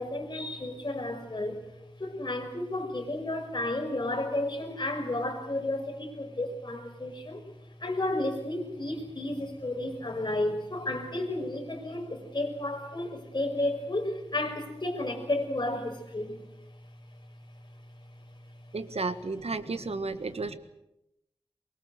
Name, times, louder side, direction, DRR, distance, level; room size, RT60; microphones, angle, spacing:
voice 1, 0.0-1.6 2.0-7.4 7.8-16.4 19.3-20.6, left 1 dB, 45° left, 2 dB, 5.6 m, -32 dB
voice 2, 18.7-20.6, right 3 dB, 85° right, 11 dB, 1.5 m, -33 dB
23.5 x 22.0 x 8.0 m, 0.87 s
wide cardioid pair, 80°, 10 cm